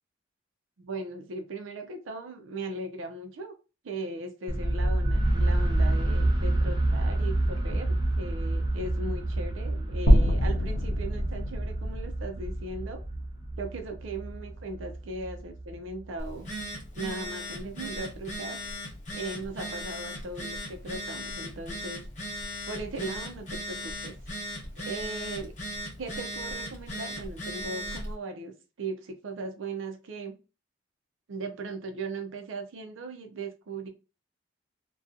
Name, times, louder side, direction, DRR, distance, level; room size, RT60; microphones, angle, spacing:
voice 1, 0.8-3.5 3.8-13.0 13.6-16.5 16.9-18.6 19.1-22.0 22.7-24.1 24.9-25.5 26.0-30.3 31.3-33.9, right 2 dB, 85° right, 4 dB, 0.5 m, -38 dB
sound 1, 4.5-16.3, right 1 dB, 20° right, 0.4 m, -28 dB
sound 2, 10.1-14.3, equal, 90° left, 0.6 m, -26 dB
Telephone, 16.2-28.1, equal, 40° left, 0.8 m, -37 dB
2.6 x 2.3 x 2.4 m, 0.31 s
head